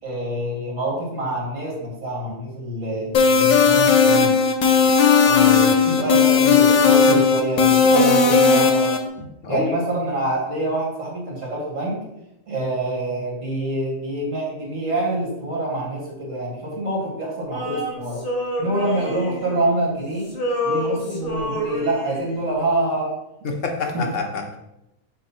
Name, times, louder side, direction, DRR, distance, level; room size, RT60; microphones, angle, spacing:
voice 1, 0.0-4.4 5.2-9.0 9.5-12.0 12.5-18.3 18.6-20.3 20.6-23.2 23.9-24.0, right 1 dB, 70° right, -3 dB, 2.2 m, -26 dB
sound 1, 3.1-9.0, left 5 dB, 90° left, 1.2 m, -15 dB
voice 2, 9.2-9.8 23.4-24.6, left 4 dB, 65° left, 2 dB, 1.2 m, -27 dB
Male singing, 17.5-20.0 20.2-22.4, left 1 dB, 30° left, 1.0 m, -28 dB
6.6 x 2.6 x 5.6 m, 0.88 s
omnidirectional pair, 1.4 m